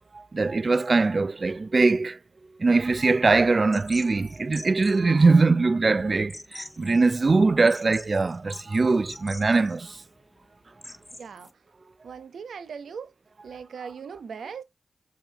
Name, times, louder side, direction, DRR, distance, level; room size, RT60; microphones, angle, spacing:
voice 1, 0.1-2.2 2.6-10.0, right 3 dB, 50° right, 0.4 m, -22 dB
sound 1, 3.7-11.5, left 1 dB, 15° left, 1.1 m, -45 dB
voice 2, 11.2-11.6 12.0-13.1 13.4-14.6, right 6 dB, 85° right, 0.9 m, -39 dB
7.2 x 5.6 x 2.9 m
cardioid pair, 45°, 0 cm